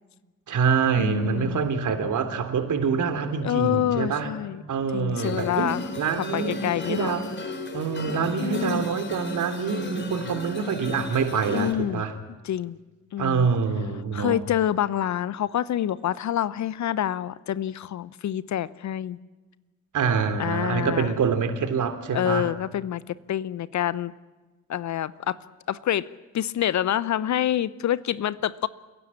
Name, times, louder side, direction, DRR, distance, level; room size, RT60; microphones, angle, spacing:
voice 1, 0.5-4.3 4.7-5.7 6.0-6.6 6.8-7.3 7.7-12.1 13.2-14.4 19.9-22.5, right 6 dB, 50° right, 8 dB, 3.3 m, -25 dB
voice 2, 1.0-1.6 3.4-4.6 4.9-5.8 6.3-7.1 8.4-8.9 11.5-12.0 12.4-12.8 13.1-13.5 14.1-19.2 20.4-21.1 22.1-24.1 24.7-25.4 25.7-26.1 26.3-28.7, left 11 dB, 45° left, 18 dB, 0.9 m, -27 dB
sound 1, 5.2-11.7, left 2 dB, 25° left, 4.2 m, -36 dB
29.0 x 16.5 x 8.6 m, 1.2 s
figure-of-eight pair, 50°, 40 cm